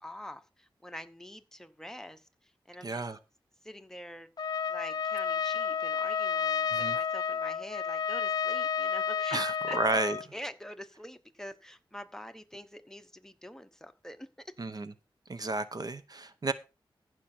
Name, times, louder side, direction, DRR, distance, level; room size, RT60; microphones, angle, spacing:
voice 1, 0.0-3.1 3.6-4.3 4.7-9.4 9.7-9.8 10.3-14.5, equal, 5° left, 1.0 m, -46 dB
voice 2, 2.8-3.2 6.7-7.0 9.3-10.2 14.6-14.9 15.3-16.5, right 3 dB, 45° right, 0.8 m, -32 dB
Trumpet, 4.4-10.3, left 7 dB, 50° left, 0.5 m, -31 dB
15.0 x 6.0 x 4.4 m
wide cardioid pair, 90°, 9 cm